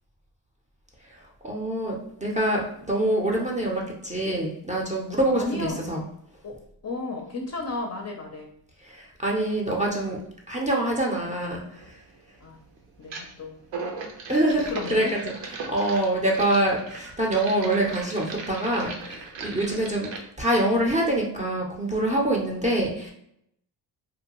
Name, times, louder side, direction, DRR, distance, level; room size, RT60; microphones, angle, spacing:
voice 1, 1.4-6.0 8.8-10.2 10.5-12.0 14.3-20.1 20.4-23.1, right 1 dB, 15° right, -2 dB, 0.5 m, -25 dB
voice 2, 5.3-5.8 6.4-6.6 6.8-8.5 12.4-12.6 13.0-13.6 14.7-15.2, left 3 dB, 35° left, 1 dB, 0.5 m, -33 dB
sound 1, 11.7-11.9 13.0-13.3 13.6-20.2, right 4 dB, 65° right, 0.7 m, -38 dB
2.7 x 2.2 x 2.9 m, 0.72 s
cardioid pair, 90°, 47 cm